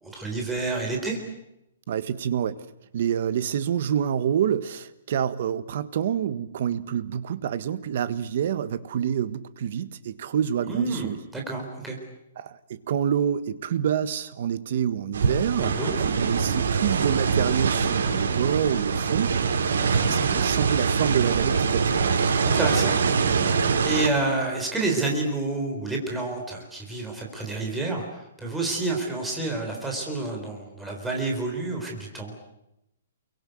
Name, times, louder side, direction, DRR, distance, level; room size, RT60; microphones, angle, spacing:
voice 1, 0.0-1.2 10.7-12.0 15.6-15.9 19.8-20.3 22.4-22.9 23.8-32.3, right 2 dB, 5° right, 4.1 m, -29 dB
voice 2, 1.9-2.6 2.9-11.2 12.4-22.0, right 9 dB, 40° right, 1.6 m, -27 dB
sound 1, 15.1-24.1, right 5 dB, 90° right, 4.8 m, -24 dB
29.0 x 23.5 x 8.0 m
hypercardioid pair, 175°, 0 cm